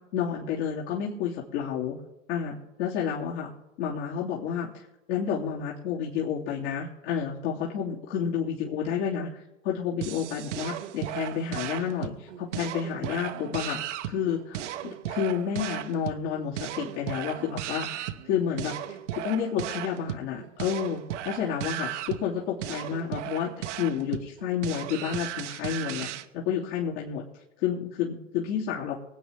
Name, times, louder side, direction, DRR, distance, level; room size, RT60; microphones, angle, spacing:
voice 1, 0.1-2.0 2.3-3.5 3.8-4.7 5.1-13.8 14.1-17.9 18.2-18.7 19.1-21.0 21.2-23.5 23.8-26.1 26.3-27.2 27.6-29.0, left 8 dB, 60° left, -5 dB, 2.9 m, -30 dB
sound 1, 10.0-26.3, right 12 dB, 60° right, 1.0 m, -36 dB
24.5 x 8.7 x 3.4 m, 0.96 s
hypercardioid pair, 105°, 39 cm